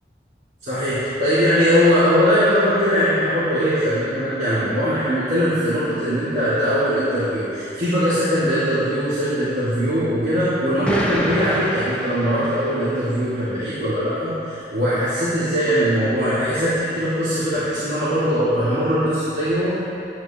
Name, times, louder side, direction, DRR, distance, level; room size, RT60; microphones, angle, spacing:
voice 1, 0.6-19.8, equal, 80° right, -13 dB, 2.1 m, -20 dB
Explosion, 10.8-13.0, equal, 5° left, 0.6 m, -27 dB
10.5 x 9.1 x 2.9 m, 2.7 s
head